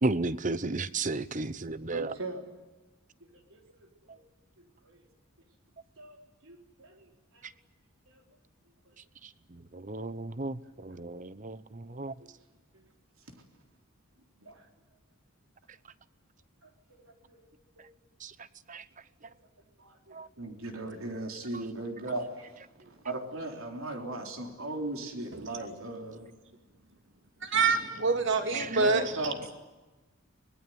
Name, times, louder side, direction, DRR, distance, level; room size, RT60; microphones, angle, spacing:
voice 1, 0.0-2.1 9.7-12.1 18.2-18.3 18.7-18.8 20.1-20.3 28.5-28.8, right 3 dB, 35° right, 16 dB, 0.8 m, -33 dB
voice 2, 1.9-2.4 3.5-4.2 4.8-5.0 6.0-6.2 6.4-7.1 14.4-14.6 16.9-17.4 19.2-19.3 19.8-22.5 23.0-26.3 28.5-29.4, right 2 dB, 75° right, 3 dB, 3.7 m, -38 dB
voice 3, 27.5-29.1, right 4 dB, 60° right, 6 dB, 2.7 m, -25 dB
24.5 x 20.0 x 9.4 m, 1.1 s
head